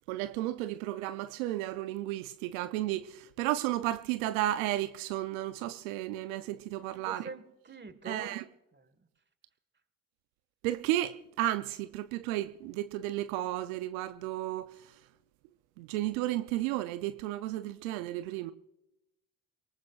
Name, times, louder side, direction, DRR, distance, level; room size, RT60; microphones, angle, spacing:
voice 1, 0.1-7.3 8.1-8.4 10.6-14.7 15.8-18.5, right 14 dB, 85° right, 0.6 m, -33 dB
voice 2, 7.0-8.4 8.7-9.1, right 4 dB, 25° right, 1.6 m, -44 dB
28.0 x 19.0 x 2.4 m
hypercardioid pair, 50°, 41 cm